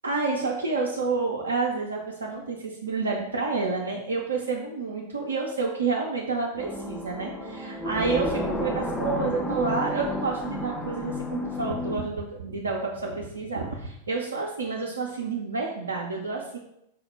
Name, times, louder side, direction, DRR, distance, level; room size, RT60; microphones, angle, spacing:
voice 1, 0.0-16.6, right 4 dB, 75° right, -1 dB, 0.4 m, -29 dB
sound 1, 6.6-12.0, left 1 dB, 15° left, 0.3 m, -31 dB
4.3 x 2.1 x 3.1 m, 0.78 s
figure-of-eight pair, 90°, 0 cm